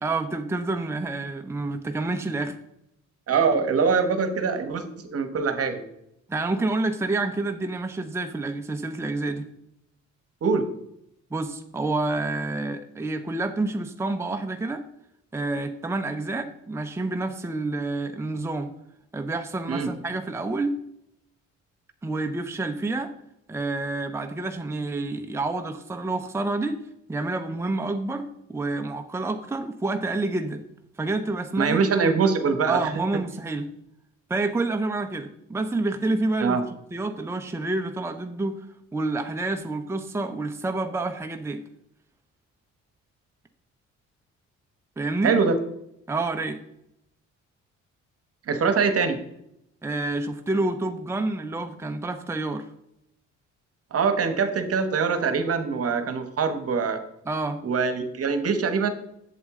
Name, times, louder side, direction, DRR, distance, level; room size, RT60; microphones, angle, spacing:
voice 1, 0.0-2.6 6.3-9.5 11.3-14.8 15.3-18.7 19.1-20.8 22.0-23.1 23.5-26.8 27.1-30.6 31.0-32.2 32.7-33.7 34.3-36.6 36.9-38.7 38.9-41.6 45.0-45.3 46.1-46.6 49.8-52.7 57.2-57.6, right 2 dB, 10° right, 5 dB, 0.7 m, -28 dB
voice 2, 3.3-5.8 10.4-10.7 19.7-19.9 31.6-32.8 36.4-36.6 45.2-45.6 48.5-49.2 53.9-57.0 57.6-58.9, right 5 dB, 50° right, 9 dB, 1.2 m, -23 dB
8.0 x 7.7 x 3.7 m, 0.78 s
cardioid pair, 90°, 30 cm